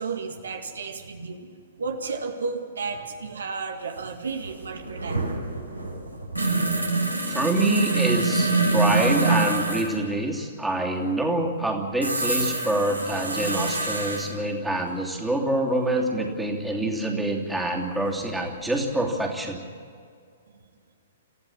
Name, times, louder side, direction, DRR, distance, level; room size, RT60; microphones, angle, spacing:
voice 1, 0.0-5.2, right 4 dB, 65° right, 5 dB, 2.0 m, -33 dB
sound 1, 4.0-4.1 4.3-9.9 12.0-14.3 16.5-16.6 18.1-18.8 19.0-19.1, right 3 dB, 90° right, 5.3 m, -25 dB
voice 2, 7.3-19.6, right 1 dB, 5° right, 0 dB, 2.9 m, -26 dB
28.5 x 15.0 x 7.3 m, 2.2 s
figure-of-eight pair, 115°, 0 cm